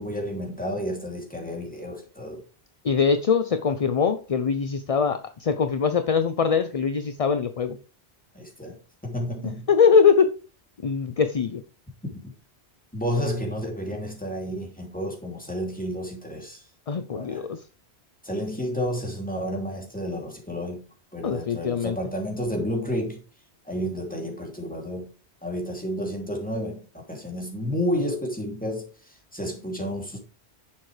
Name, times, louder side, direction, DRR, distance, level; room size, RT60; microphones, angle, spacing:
voice 1, 0.0-2.4 8.3-8.8 9.0-9.7 12.9-16.6 17.1-17.5 18.2-20.8 21.1-23.2 23.6-25.1 25.4-30.2, equal, 5° left, 2.8 m, -31 dB
voice 2, 2.8-7.8 9.7-10.3 10.8-11.6 16.9-17.6 21.2-22.0, left 6 dB, 40° left, 0.6 m, -22 dB
10.5 x 7.2 x 3.3 m
omnidirectional pair, 1.1 m